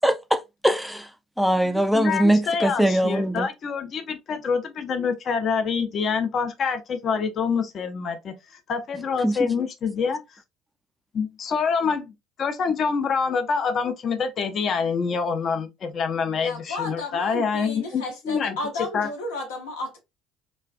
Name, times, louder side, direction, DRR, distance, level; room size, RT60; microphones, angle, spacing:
voice 1, 0.0-1.1 1.4-3.5 9.2-9.4, right 1 dB, ahead, 0.3 m, -21 dB
voice 2, 1.6-8.3 8.7-10.2 11.1-12.1 12.4-18.6 18.9-19.1, left 5 dB, 45° left, 0.6 m, -26 dB
voice 3, 16.4-20.0, left 2 dB, 75° left, 0.8 m, -33 dB
3.1 x 2.3 x 2.4 m
figure-of-eight pair, 60°, 0 cm